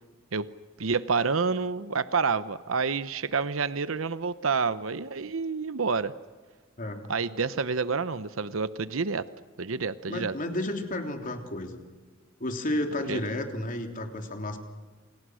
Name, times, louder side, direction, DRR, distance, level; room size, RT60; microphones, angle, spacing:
voice 1, 0.8-6.1 7.1-9.3 9.6-10.3 13.1-13.2, right 5 dB, 85° right, 14 dB, 0.9 m, -28 dB
voice 2, 10.1-11.8 12.4-14.6, left 1 dB, 40° left, 4 dB, 3.4 m, -32 dB
28.5 x 28.0 x 6.4 m, 1.4 s
head